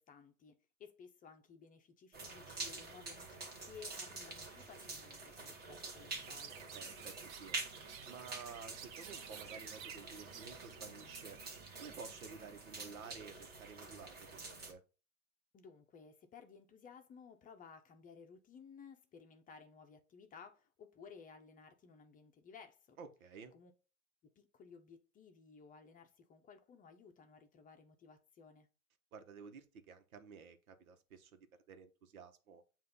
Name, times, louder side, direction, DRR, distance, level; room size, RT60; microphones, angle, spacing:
voice 1, 0.0-6.5 15.5-23.0 23.5-23.7 24.4-28.7, left 6 dB, 20° left, 0.7 m, -57 dB
sound 1, 2.1-14.7, right 3 dB, 20° right, 1.5 m, -47 dB
Chirp tweet, 6.1-13.0, right 9 dB, 55° right, 1.2 m, -54 dB
voice 2, 6.7-7.6 8.1-11.4 11.8-14.8 23.0-23.5 29.1-32.6, right 5 dB, 75° right, 1.2 m, -53 dB
7.6 x 2.6 x 5.3 m
hypercardioid pair, 120°, 42 cm